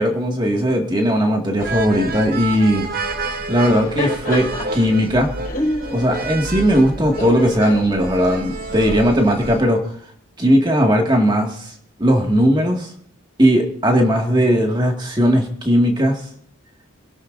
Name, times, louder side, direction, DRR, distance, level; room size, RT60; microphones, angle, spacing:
voice 1, 0.0-2.9 3.5-5.3 5.9-9.8 10.4-11.7 12.0-12.9 13.4-16.2, equal, 20° right, 2 dB, 2.0 m, -17 dB
sound 1, 1.6-9.6, right 3 dB, 45° right, 1.1 m, -29 dB
Laughter, 3.5-8.8, left 1 dB, 45° left, 4.5 m, -30 dB
25.0 x 11.5 x 2.7 m, 0.64 s
head